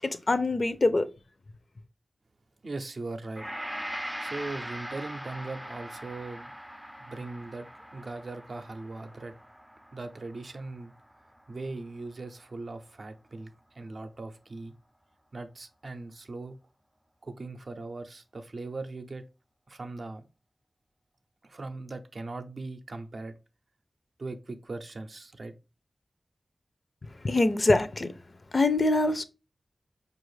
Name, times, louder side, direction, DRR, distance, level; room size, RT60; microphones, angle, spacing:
voice 1, 0.0-1.1 27.2-28.1 28.5-29.2, left 2 dB, 50° left, 0.5 m, -24 dB
voice 2, 2.6-3.5 4.2-6.5 7.0-9.3 9.9-10.9 11.5-14.7 15.3-16.6 17.2-19.2 19.7-20.3 21.4-23.4 24.2-25.5, right 3 dB, 65° right, 0.5 m, -39 dB
Gong, 3.4-11.8 12.1-12.3, equal, 5° right, 0.3 m, -41 dB
4.7 x 2.4 x 3.1 m
cardioid pair, 40°, 0 cm